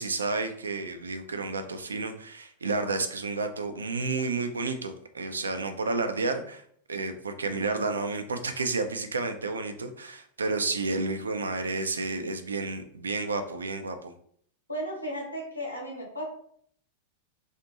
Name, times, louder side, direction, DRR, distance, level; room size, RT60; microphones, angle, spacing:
voice 1, 0.0-6.6 6.9-14.1, right 3 dB, 75° right, 7 dB, 0.3 m, -31 dB
voice 2, 14.7-16.3, equal, 85° left, 0 dB, 0.8 m, -34 dB
2.5 x 2.4 x 2.7 m, 0.63 s
figure-of-eight pair, 90°, 0 cm